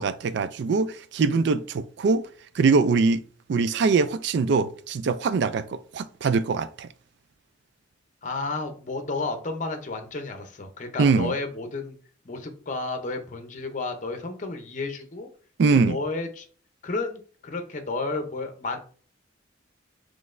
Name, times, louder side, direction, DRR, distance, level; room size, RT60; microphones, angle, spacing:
voice 1, 0.0-2.3 2.6-3.2 3.5-6.9 11.0-11.3 15.6-16.0, right 4 dB, 60° right, 0.3 m, -23 dB
voice 2, 8.2-12.0 12.2-15.3 15.7-16.5 16.8-18.8, left 3 dB, 40° left, 0.7 m, -32 dB
3.9 x 3.2 x 2.5 m
head